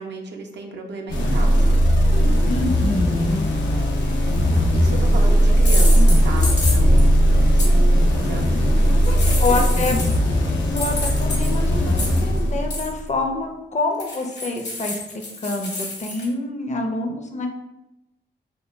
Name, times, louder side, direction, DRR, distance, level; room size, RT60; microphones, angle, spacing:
voice 1, 0.0-1.8 3.7-3.9 4.6-9.8, right 3 dB, 70° right, 1 dB, 0.5 m, -35 dB
sound 1, 1.1-13.0, equal, 90° left, 0.4 m, -18 dB
voice 2, 2.5-3.5 9.1-10.0 10.7-17.5, left 2 dB, 40° left, 3 dB, 0.5 m, -26 dB
sound 2, 4.3-4.6 5.6-7.1 7.6-7.7 8.8-10.3 10.8-12.4 12.7-13.0 14.0-16.2, left 2 dB, 65° left, 0.9 m, -29 dB
2.2 x 2.2 x 3.0 m, 0.92 s
cardioid pair, 50°, 19 cm